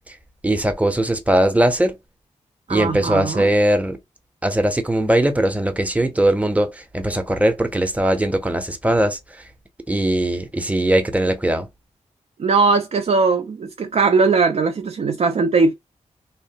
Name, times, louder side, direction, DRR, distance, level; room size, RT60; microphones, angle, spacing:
voice 1, 0.4-1.9 2.7-4.0 4.4-9.2 9.9-11.7, right 1 dB, 10° right, 0.7 m, -20 dB
voice 2, 2.7-3.5 12.4-15.7, right 4 dB, 55° right, 0.4 m, -19 dB
2.7 x 2.0 x 2.8 m
cardioid pair, 50°, 13 cm